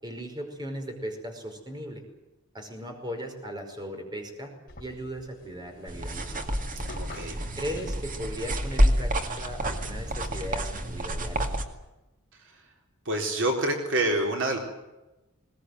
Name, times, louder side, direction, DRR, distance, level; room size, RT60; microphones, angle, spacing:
voice 1, 0.0-2.0 2.5-4.5 4.8-6.4 7.5-11.5, equal, 20° right, 4 dB, 5.1 m, -37 dB
sound 1, 4.7-10.4, left 2 dB, 45° left, 3.0 m, -49 dB
sound 2, 5.9-11.7, equal, 40° right, 2.2 m, -28 dB
voice 2, 6.9-7.4 12.4-12.6 13.1-14.6, right 1 dB, 60° right, 2 dB, 4.0 m, -27 dB
21.0 x 20.0 x 9.5 m, 1.0 s
head